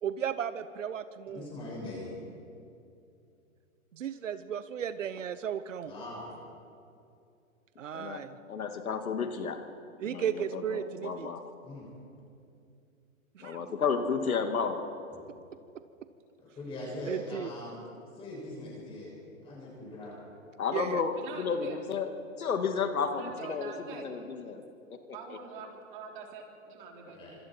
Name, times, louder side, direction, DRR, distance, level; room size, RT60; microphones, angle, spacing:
voice 1, 0.0-1.5 3.9-5.9 7.8-8.4 10.0-11.3 13.3-13.6 17.1-17.5 20.7-21.0, right 8 dB, 65° right, 13 dB, 1.0 m, -35 dB
voice 2, 1.3-2.1 5.8-6.3 11.6-11.9 15.1-15.2 16.4-17.8 18.1-19.1 19.4-20.1 27.1-27.4, left 1 dB, 15° left, -4 dB, 6.7 m, -41 dB
voice 3, 8.5-9.7 10.0-11.4 13.4-14.8 20.6-22.1 22.4-24.6, left 5 dB, 85° left, 6 dB, 2.3 m, -32 dB
voice 4, 21.2-21.8 23.0-24.1 25.1-27.4, right 5 dB, 35° right, 1 dB, 3.4 m, -45 dB
26.0 x 26.0 x 4.5 m, 2.6 s
hypercardioid pair, 160°, 41 cm